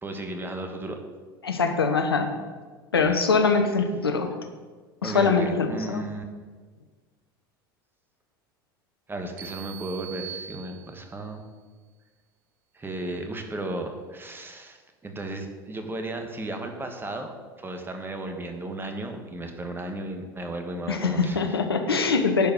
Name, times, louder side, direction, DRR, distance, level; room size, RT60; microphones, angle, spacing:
voice 1, 0.0-1.0 3.0-3.1 5.0-6.2 9.1-11.4 12.7-17.3 17.6-21.4 21.9-22.1, right 2 dB, 15° right, 5 dB, 1.4 m, -34 dB
voice 2, 1.4-2.3 2.9-4.3 5.0-6.0 20.9-22.5, left 4 dB, 85° left, 6 dB, 1.0 m, -23 dB
sound 1, 9.4-11.2, right 10 dB, 60° right, 0.8 m, -41 dB
10.5 x 4.7 x 6.6 m, 1.4 s
hypercardioid pair, 75°, 12 cm